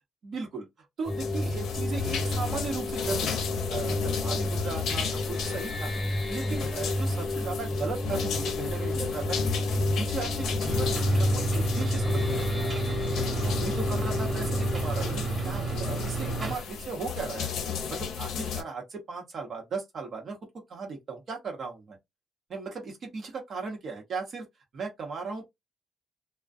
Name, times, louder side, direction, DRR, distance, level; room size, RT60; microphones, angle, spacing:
voice 1, 0.2-0.7 1.0-9.5 9.8-12.9 13.3-17.5 17.9-20.4 20.7-22.0 22.5-24.4 24.7-25.4, right 4 dB, 55° right, 0.9 m, -37 dB
sound 1, 1.1-18.6, left 7 dB, 75° left, 0.6 m, -34 dB
sound 2, 1.1-16.5, left 1 dB, 25° left, 0.5 m, -31 dB
sound 3, 10.7-16.5, right 4 dB, 35° right, 1.2 m, -33 dB
2.3 x 2.1 x 2.5 m
cardioid pair, 90°, 0 cm